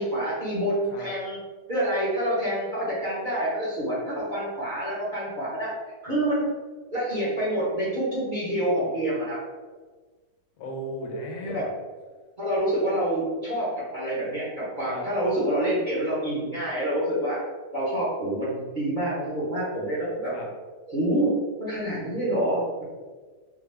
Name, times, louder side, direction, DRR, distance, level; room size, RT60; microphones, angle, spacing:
voice 1, 0.0-1.4 1.7-5.7 6.0-6.5 6.9-9.4 11.4-11.6 12.4-17.4 17.7-20.3 20.9-21.3 21.6-22.8, right 1 dB, 35° right, -9 dB, 1.0 m, -27 dB
voice 2, 10.6-11.7 14.8-15.1 20.3-20.5, equal, 75° left, -1 dB, 1.2 m, -35 dB
3.9 x 2.3 x 3.3 m, 1.4 s
omnidirectional pair, 1.8 m